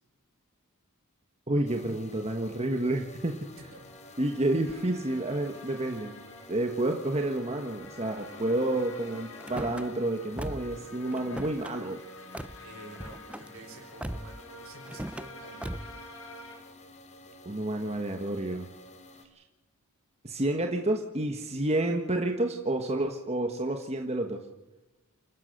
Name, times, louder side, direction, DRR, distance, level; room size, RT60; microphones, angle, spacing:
voice 1, 1.5-3.4 4.2-6.1 6.5-12.0 17.4-18.7 19.3-19.4 20.2-24.5, right 1 dB, 30° right, 4 dB, 1.5 m, -29 dB
sound 1, 1.6-19.2, left 2 dB, 30° left, 2.4 m, -51 dB
sound 2, 3.2-16.6, left 2 dB, 65° left, 5.5 m, -49 dB
Car / Slam, 9.4-9.9 10.3-10.8 11.1-11.7 12.3-12.6 13.0-13.5 14.0-14.4 14.9-15.3 15.6-16.0, right 1 dB, 5° right, 0.6 m, -38 dB
voice 2, 12.6-16.0, right 2 dB, 65° right, 2 dB, 6.0 m, -49 dB
29.5 x 13.5 x 6.7 m, 1.1 s
head